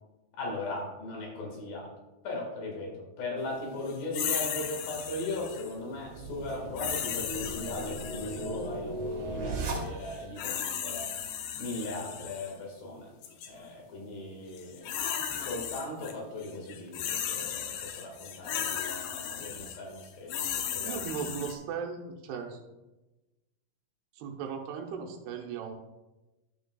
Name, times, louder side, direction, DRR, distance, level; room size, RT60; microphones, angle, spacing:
voice 1, 0.3-1.9 2.2-11.1 11.6-13.1 13.5-14.9 15.4-21.0, left 2 dB, 65° left, -1 dB, 3.4 m, -38 dB
sound 1, 4.1-5.7 6.8-8.6 10.1-12.5 13.2-13.5 14.5-16.1 16.4-21.6, left 9 dB, 85° left, 2.8 m, -35 dB
sound 2, 5.8-10.4, right 2 dB, 50° right, 2.0 m, -37 dB
voice 2, 20.8-22.6 24.1-25.7, right 6 dB, 80° right, 2 dB, 2.8 m, -37 dB
12.0 x 6.7 x 2.3 m, 1.1 s
omnidirectional pair, 4.7 m